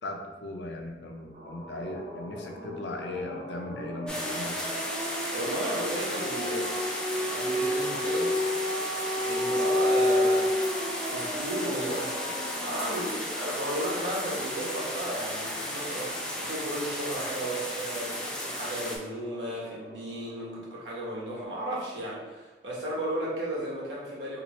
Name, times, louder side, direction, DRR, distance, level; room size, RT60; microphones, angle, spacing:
voice 1, 0.0-4.6, left 2 dB, 80° left, 3 dB, 0.5 m, -38 dB
sound 1, 1.3-20.8, left 1 dB, 35° right, 0.7 m, -33 dB
sound 2, 4.1-19.0, left 1 dB, 5° left, 0.4 m, -34 dB
voice 2, 5.3-6.7 7.2-8.3 9.2-24.4, right 1 dB, 90° right, -6 dB, 1.1 m, -34 dB
3.0 x 2.8 x 3.1 m, 1.2 s
head